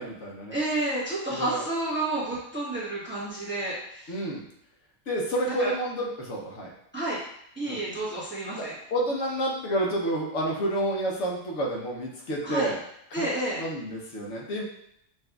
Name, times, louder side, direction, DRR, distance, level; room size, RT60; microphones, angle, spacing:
voice 1, 0.0-0.5 1.3-1.6 4.1-4.4 5.1-6.7 7.6-7.8 8.5-12.8 13.1-13.3 13.6-14.6, right 1 dB, 75° left, -2 dB, 1.1 m, -29 dB
voice 2, 0.5-4.1 5.5-5.7 6.9-7.2 7.6-8.7 12.4-12.7 13.1-13.6, right 2 dB, 10° right, -8 dB, 1.1 m, -30 dB
5.8 x 2.6 x 2.3 m, 0.74 s
omnidirectional pair, 1.3 m